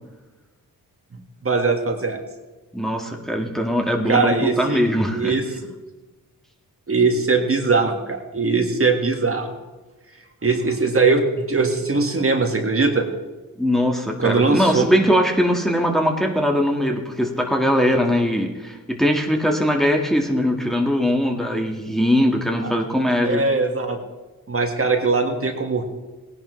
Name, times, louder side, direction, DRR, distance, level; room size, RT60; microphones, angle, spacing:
voice 1, 1.4-2.2 4.1-4.8 5.1-5.4 6.9-9.5 10.4-13.1 14.2-14.9 22.6-22.7 23.2-24.0 24.5-25.8, right 4 dB, 35° right, 3 dB, 1.7 m, -20 dB
voice 2, 2.7-5.4 13.6-23.4, equal, ahead, 1 dB, 1.7 m, -21 dB
17.0 x 11.0 x 3.2 m, 1.2 s
cardioid pair, 60°, 37 cm